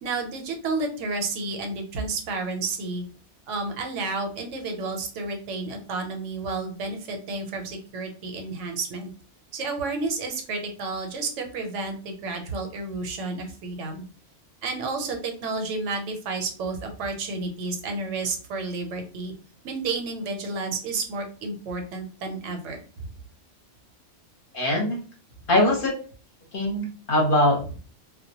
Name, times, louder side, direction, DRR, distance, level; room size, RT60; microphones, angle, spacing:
voice 1, 0.0-3.0 3.5-9.1 9.5-14.0 14.6-19.3 19.6-23.1, right 3 dB, 80° right, 4 dB, 0.9 m, -31 dB
voice 2, 24.5-25.0 25.5-25.9 26.5-27.8, left 1 dB, 55° left, 0 dB, 0.8 m, -22 dB
2.1 x 2.1 x 2.7 m, 0.38 s
omnidirectional pair, 1.2 m